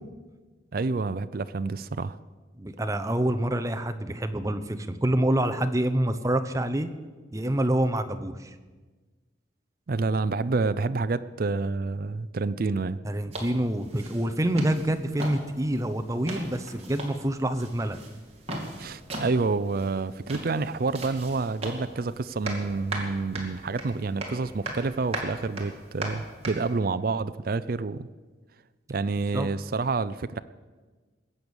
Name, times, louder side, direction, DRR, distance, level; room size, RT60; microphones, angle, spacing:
voice 1, 0.7-2.2 9.9-13.0 18.8-28.1 28.9-30.4, right 3 dB, 50° right, 12 dB, 0.4 m, -28 dB
voice 2, 2.6-6.9 7.3-8.5 13.0-18.0 29.3-29.5, right 1 dB, 15° right, 8 dB, 0.7 m, -27 dB
sound 1, 13.3-26.7, right 1 dB, 35° right, 2.5 m, -38 dB
20.5 x 8.2 x 7.1 m, 1.4 s
head